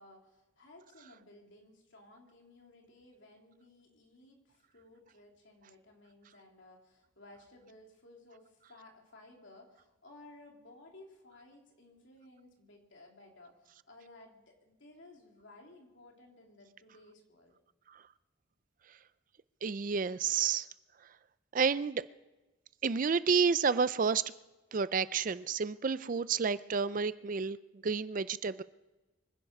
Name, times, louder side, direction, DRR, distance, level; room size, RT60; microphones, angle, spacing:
voice 1, 0.0-17.5, left 2 dB, 65° left, 3.3 m, -57 dB
voice 2, 19.6-20.7 21.5-22.0 22.8-24.3 24.7-27.6 27.8-28.6, right 5 dB, 40° right, 0.4 m, -30 dB
25.0 x 10.5 x 5.3 m
head